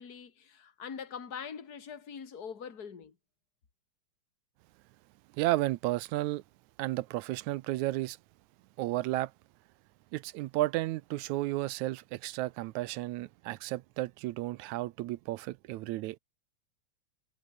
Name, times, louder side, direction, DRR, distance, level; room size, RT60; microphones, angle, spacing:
voice 1, 0.0-3.1, left 7 dB, 30° left, 2.7 m, -43 dB
voice 2, 5.4-6.4 6.8-8.2 8.8-9.3 10.1-16.2, right 17 dB, 80° right, 2.0 m, -33 dB
omnidirectional pair, 3.5 m